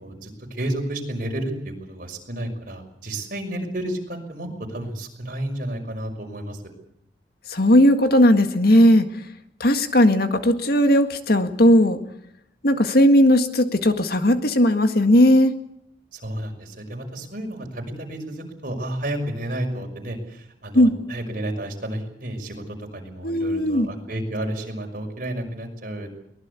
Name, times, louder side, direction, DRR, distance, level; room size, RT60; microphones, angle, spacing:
voice 1, 0.0-6.6 16.1-26.2, right 1 dB, 50° right, 2 dB, 5.9 m, -31 dB
voice 2, 7.5-9.1 9.6-12.0 12.6-15.5 20.7-20.9 23.2-23.9, equal, 60° left, 8 dB, 1.8 m, -17 dB
23.5 x 19.5 x 8.3 m, 0.74 s
head